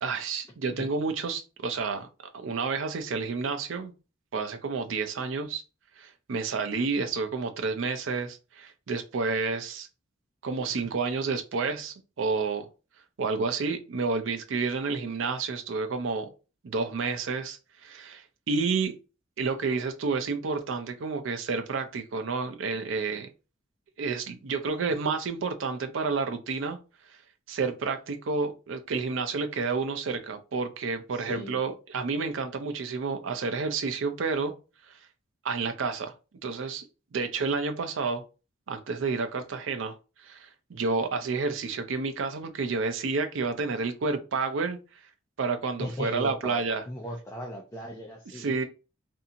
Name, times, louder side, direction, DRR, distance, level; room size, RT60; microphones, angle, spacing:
voice 1, 0.0-2.1 2.3-3.9 4.3-5.6 6.0-9.9 10.4-12.7 13.2-16.3 16.6-18.9 19.4-23.3 24.0-26.8 27.5-34.5 35.4-36.1 36.4-38.2 38.7-40.0 40.2-44.8 45.4-46.8 48.3-48.6, right 4 dB, 70° right, 0.5 m, -30 dB
voice 2, 31.1-31.6 45.8-48.6, equal, 15° left, 0.4 m, -37 dB
2.7 x 2.6 x 2.5 m
head